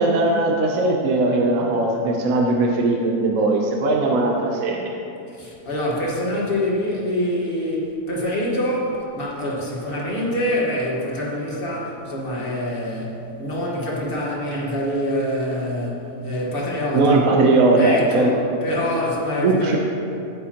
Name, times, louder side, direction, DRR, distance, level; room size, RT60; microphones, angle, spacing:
voice 1, 0.0-5.0 16.9-18.3 19.4-19.8, right 2 dB, 60° right, 1 dB, 1.1 m, -19 dB
voice 2, 5.3-17.2 17.8-19.8, left 1 dB, 35° left, -4 dB, 1.6 m, -25 dB
10.0 x 9.3 x 2.9 m, 2.6 s
omnidirectional pair, 1.8 m